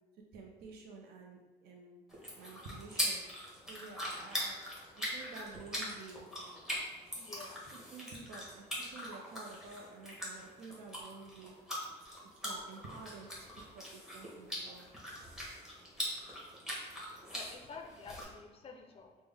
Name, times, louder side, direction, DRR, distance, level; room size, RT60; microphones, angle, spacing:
voice 1, 0.3-2.0 2.4-3.3 3.7-4.6 4.9-6.3 7.7-11.5 12.0-12.1 12.4-14.9 15.3-15.4, right 4 dB, 70° right, 1 dB, 0.5 m, -51 dB
sound 1, 2.1-18.2, equal, 5° right, 1.0 m, -42 dB
voice 2, 7.2-7.7 17.3-19.2, left 4 dB, 35° left, 4 dB, 0.4 m, -50 dB
3.5 x 2.0 x 3.3 m, 1.2 s
cardioid pair, 110°, 17 cm